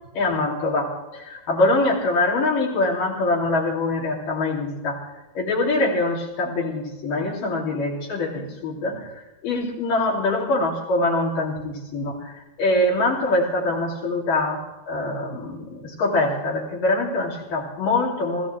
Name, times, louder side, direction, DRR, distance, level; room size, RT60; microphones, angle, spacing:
voice 1, 0.1-5.0 5.4-9.1 9.4-12.3 12.6-18.5, left 2 dB, 55° left, -3 dB, 4.3 m, -24 dB
25.5 x 15.5 x 3.4 m, 1.0 s
omnidirectional pair, 4.7 m